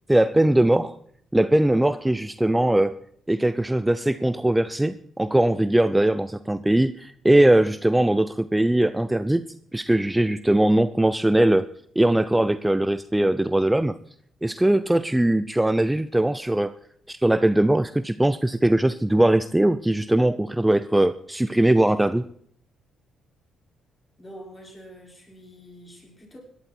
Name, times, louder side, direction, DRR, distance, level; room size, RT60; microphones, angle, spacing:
voice 1, 0.1-1.0 1.3-3.0 3.3-9.4 9.7-11.7 12.0-14.0 14.4-16.7 17.1-22.3, right 1 dB, 10° right, 13 dB, 0.6 m, -20 dB
voice 2, 24.2-26.4, equal, 20° left, -1 dB, 5.8 m, -45 dB
17.5 x 11.5 x 4.5 m, 0.63 s
cardioid pair, 90°, 0 cm